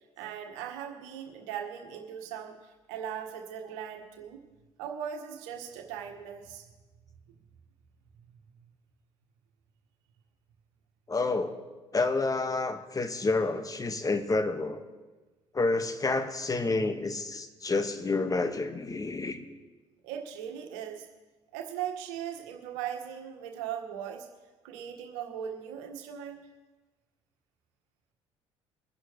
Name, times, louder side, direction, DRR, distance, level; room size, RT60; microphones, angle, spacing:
voice 1, 0.2-4.4 4.8-6.6 20.0-21.1 21.5-24.3 24.6-26.4, right 9 dB, 70° right, 4 dB, 1.6 m, -39 dB
voice 2, 11.1-11.6 11.9-14.8 15.5-19.4, left 3 dB, 25° left, 8 dB, 1.5 m, -29 dB
22.5 x 11.0 x 3.2 m, 1.2 s
figure-of-eight pair, 50°, 15 cm